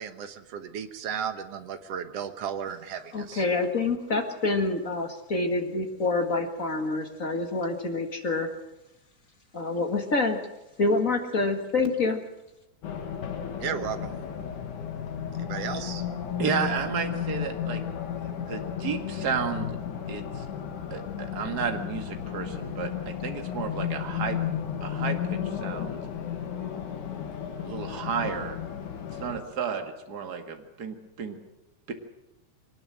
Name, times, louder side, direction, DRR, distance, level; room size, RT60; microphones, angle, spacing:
voice 1, 0.0-3.5 13.6-14.1 15.4-16.0, right 7 dB, 60° right, 9 dB, 2.1 m, -34 dB
voice 2, 3.1-8.5 9.5-10.4 10.8-12.2, left 3 dB, 35° left, 5 dB, 1.6 m, -27 dB
Race car auto racing, 12.8-29.4, left 8 dB, 75° left, 3.3 m, -33 dB
voice 3, 16.4-17.8 18.2-19.8 20.1-20.4 20.9-24.4 24.8-26.0 27.6-28.6 29.2-31.4 31.9-32.0, right 6 dB, 35° right, 5 dB, 2.2 m, -32 dB
23.5 x 19.5 x 7.7 m, 0.93 s
omnidirectional pair, 3.6 m